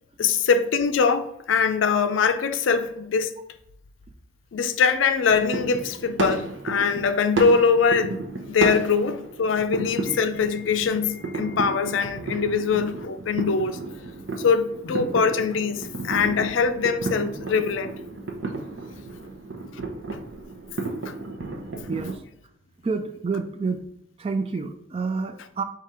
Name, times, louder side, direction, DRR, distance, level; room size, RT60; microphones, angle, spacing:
voice 1, 0.2-3.3 4.5-8.2 8.5-13.8 14.4-17.9 20.1-20.2, left 5 dB, 75° left, 0.4 m, -22 dB
sound 1, 5.3-22.2, right 3 dB, 70° right, 0.7 m, -33 dB
voice 2, 21.9-22.2 22.8-23.9 24.2-25.6, right 4 dB, 30° right, 0.3 m, -28 dB
5.0 x 2.4 x 4.2 m
head